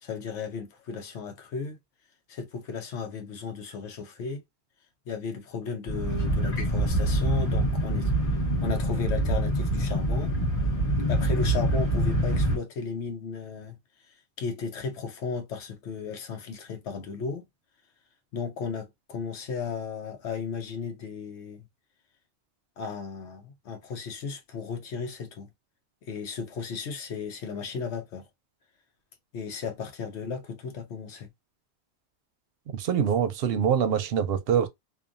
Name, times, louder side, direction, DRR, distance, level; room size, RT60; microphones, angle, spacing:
voice 1, 0.0-1.8 2.3-4.4 5.1-8.1 8.6-10.3 11.1-13.8 14.1-17.4 18.3-21.7 22.8-25.5 26.0-28.3 29.3-31.3, left 5 dB, 85° left, 1.0 m, -35 dB
sound 1, 5.9-12.6, right 1 dB, 30° left, 1.3 m, -25 dB
voice 2, 32.7-34.7, right 8 dB, 65° right, 0.7 m, -24 dB
2.9 x 2.2 x 2.4 m
omnidirectional pair, 1.1 m